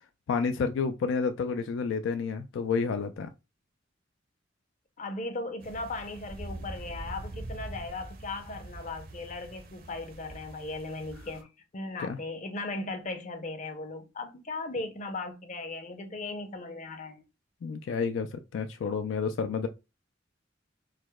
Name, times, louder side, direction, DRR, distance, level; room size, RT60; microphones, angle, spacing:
voice 1, 0.3-3.3 12.0-12.2 17.6-19.7, left 5 dB, 80° left, 0.3 m, -30 dB
voice 2, 5.0-11.5 11.7-17.2, left 2 dB, 40° left, 0.6 m, -37 dB
sound 1, 5.6-11.4, right 1 dB, 50° right, 0.6 m, -43 dB
4.7 x 2.0 x 2.2 m
head